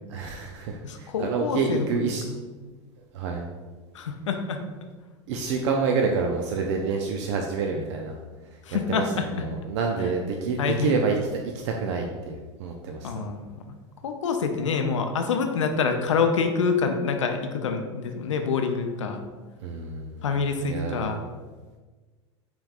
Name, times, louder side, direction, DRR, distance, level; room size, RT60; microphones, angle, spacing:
voice 1, 0.1-2.3 3.1-3.5 5.3-8.1 8.5-8.6 8.9-13.2 19.6-20.2 20.6-21.1, right 4 dB, 70° right, 2 dB, 0.4 m, -28 dB
voice 2, 0.8-2.4 3.9-4.6 8.7-9.2 10.6-10.9 13.0-13.7 14.0-19.2 20.2-21.3, left 5 dB, 90° left, 5 dB, 0.4 m, -26 dB
4.9 x 3.0 x 2.4 m, 1.3 s
hypercardioid pair, 95°, 15 cm